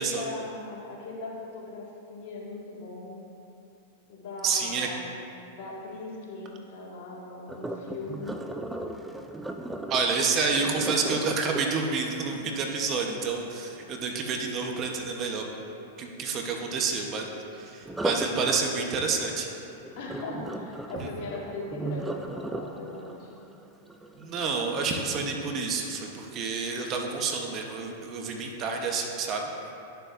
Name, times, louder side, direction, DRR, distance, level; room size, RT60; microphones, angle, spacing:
voice 1, 0.0-3.3 4.1-5.1 5.5-8.4 20.0-23.3, left 2 dB, 60° left, -4 dB, 1.9 m, -39 dB
voice 2, 4.4-4.9 9.9-15.4 16.0-17.3 17.5-19.5 21.0-21.1 24.2-29.4, right 4 dB, 35° right, 2 dB, 0.9 m, -29 dB
Sink (filling or washing), 7.5-13.4 17.8-24.9 25.4-25.7 26.2-26.3, right 2 dB, 5° right, 0.4 m, -37 dB
11.0 x 6.9 x 2.6 m, 2.8 s
hypercardioid pair, 110°, 0 cm